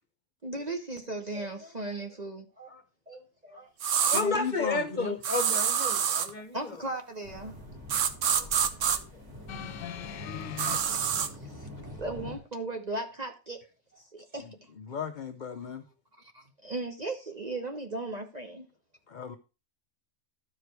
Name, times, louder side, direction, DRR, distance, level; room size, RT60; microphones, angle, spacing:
voice 1, 0.4-2.7 3.1-3.7 4.0-4.1 6.5-7.6 10.9-11.7 12.0-13.6 13.9-14.5 15.5-15.6 16.3-18.7, right 2 dB, 35° right, 0.9 m, -37 dB
voice 2, 3.1-3.6 4.1-6.7 8.4-9.1, left 3 dB, 35° left, 1.2 m, -33 dB
sound 1, 3.8-4.2 5.2-6.3 7.9-9.0 10.6-11.3, right 8 dB, 65° right, 1.0 m, -26 dB
voice 3, 4.1-5.2 8.2-8.5 14.8-15.8 19.1-19.4, left 5 dB, 50° left, 0.5 m, -36 dB
sound 2, 7.2-12.4, left 1 dB, 15° right, 2.5 m, -45 dB
sound 3, 9.5-10.8 11.8-11.9, left 10 dB, 70° left, 1.1 m, -39 dB
12.5 x 5.0 x 4.5 m
omnidirectional pair, 1.5 m